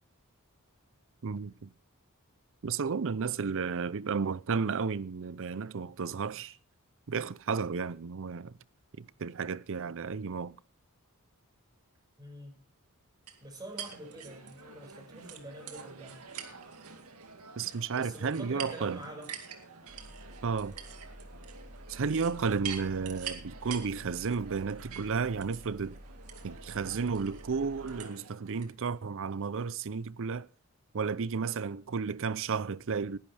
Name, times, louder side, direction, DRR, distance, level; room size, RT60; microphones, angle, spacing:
voice 1, 1.2-1.7 2.6-6.6 7.1-8.6 9.0-10.6 17.6-19.0 20.4-20.8 21.9-26.0 26.4-30.5 30.9-33.2, right 5 dB, 60° right, 0.6 m, -33 dB
voice 2, 3.1-3.7 12.2-12.6 13.4-16.2 18.0-19.3, right 1 dB, 20° right, 5.5 m, -46 dB
sound 1, 13.3-28.7, right 7 dB, 80° right, 2.2 m, -46 dB
sound 2, 19.9-28.0, equal, 45° right, 2.1 m, -50 dB
19.0 x 11.5 x 3.4 m
head